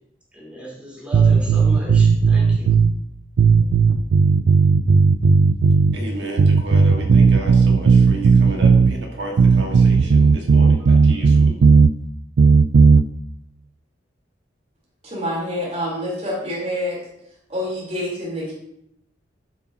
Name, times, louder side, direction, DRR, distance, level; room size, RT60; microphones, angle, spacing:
voice 1, 0.3-2.8, equal, 5° right, -4 dB, 2.6 m, -35 dB
sound 1, 1.1-2.9 3.4-6.0 6.4-8.9 9.4-11.9 12.4-13.0, right 5 dB, 90° right, 0.4 m, -14 dB
voice 2, 5.9-11.6, right 2 dB, 70° right, 0 dB, 1.7 m, -32 dB
voice 3, 15.0-17.0 17.5-18.5, left 1 dB, 35° right, -5 dB, 3.4 m, -27 dB
10.5 x 6.1 x 2.8 m, 0.77 s
head